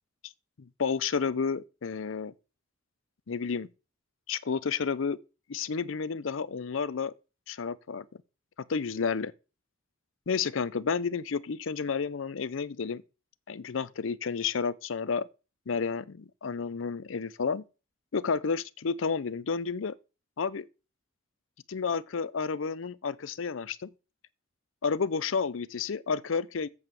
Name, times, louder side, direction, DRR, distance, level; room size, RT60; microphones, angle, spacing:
voice 1, 0.6-2.3 3.3-3.7 4.3-5.2 5.5-7.1 7.5-8.1 8.7-9.3 10.3-13.0 13.5-15.3 15.7-17.7 18.1-20.0 20.4-20.7 21.7-23.9 24.8-26.7, left 5 dB, 80° left, 0.5 m, -31 dB
7.8 x 5.4 x 6.9 m
head